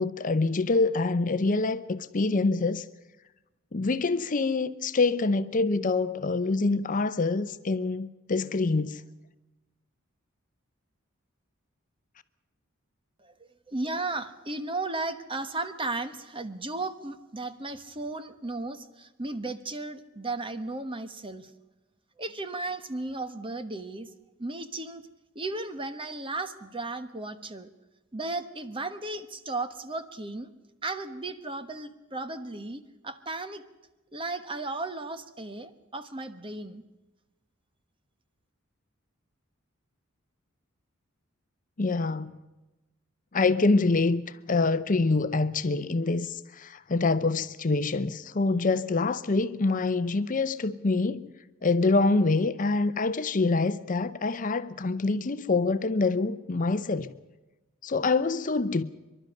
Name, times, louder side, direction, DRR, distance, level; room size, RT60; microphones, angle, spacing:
voice 1, 0.0-2.9 3.7-9.0 41.8-42.4 43.3-51.3 51.6-57.1 57.8-58.8, left 3 dB, 40° left, 0.7 m, -26 dB
voice 2, 13.7-21.5 22.2-24.1 24.4-25.0 25.3-27.7 28.1-30.5 30.8-33.6 34.1-36.8, right 2 dB, 25° right, 1.2 m, -35 dB
25.0 x 12.0 x 9.7 m
head